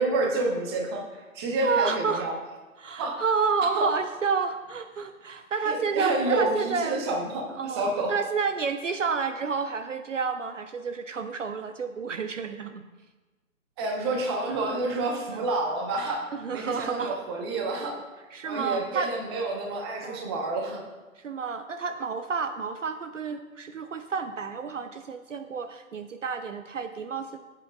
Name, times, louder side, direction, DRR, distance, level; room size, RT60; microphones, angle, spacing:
voice 1, 0.0-2.3 3.0-3.2 3.7-3.9 5.7-8.1 13.8-18.0 18.4-20.8, right 2 dB, 20° right, 2 dB, 1.1 m, -29 dB
voice 2, 1.6-2.3 2.8-7.2 7.5-12.9 15.3-15.5 16.3-17.2 18.3-19.1 20.0-20.3 21.2-27.4, right 5 dB, 60° right, 9 dB, 0.7 m, -30 dB
15.0 x 7.6 x 2.4 m, 1.2 s
figure-of-eight pair, 140°, 42 cm